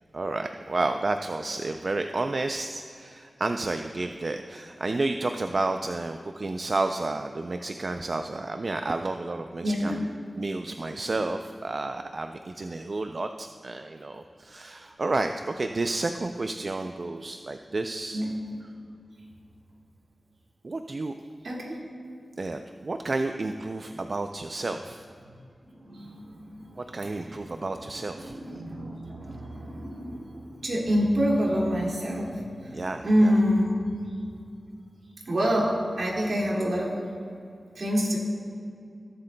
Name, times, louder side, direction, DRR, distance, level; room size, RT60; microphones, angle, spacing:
voice 1, 0.1-10.1 10.4-18.2 20.6-21.1 22.4-25.1 26.8-28.6 32.7-33.3, right 2 dB, 50° right, 6 dB, 0.3 m, -31 dB
voice 2, 9.6-10.0 18.1-18.3 21.4-21.8 25.2-25.3 25.6-27.6 28.2-33.8 35.3-37.0 37.7-38.2, equal, 75° right, -4 dB, 2.1 m, -27 dB
20.5 x 7.7 x 2.2 m, 2.4 s
wide cardioid pair, 75°, 0 cm